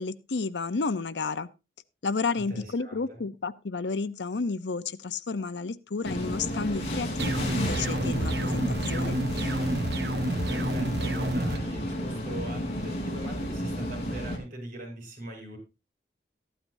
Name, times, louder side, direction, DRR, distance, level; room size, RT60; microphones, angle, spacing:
voice 1, 0.0-1.5 2.0-9.2, left 4 dB, 90° left, 15 dB, 0.7 m, -31 dB
voice 2, 2.4-3.2 10.5-15.6, right 1 dB, 50° right, 1 dB, 7.4 m, -41 dB
sound 1, 6.0-14.4, equal, 40° left, 3.9 m, -32 dB
sound 2, 7.2-11.6, right 1 dB, 70° right, 1.2 m, -29 dB
14.5 x 12.0 x 2.7 m, 0.28 s
head